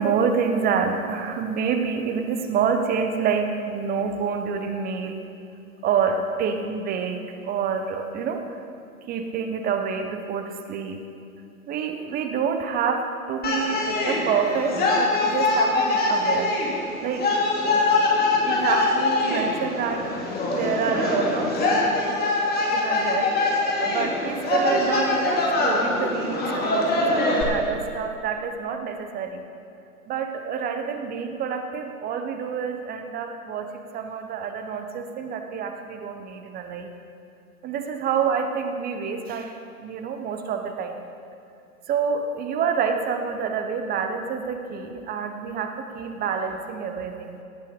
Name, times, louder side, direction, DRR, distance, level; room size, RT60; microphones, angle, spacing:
voice 1, 0.0-5.3 5.8-8.6 9.1-11.0 11.7-16.6 17.0-17.3 17.7-17.9 18.3-23.3 23.8-29.5 30.1-36.9 37.6-41.0 41.9-47.4, right 6 dB, 20° right, 6 dB, 0.9 m, -27 dB
sound 1, 13.4-27.4, left 2 dB, 20° left, 2.8 m, -23 dB
18.0 x 8.6 x 5.1 m, 2.5 s
figure-of-eight pair, 110°, 43 cm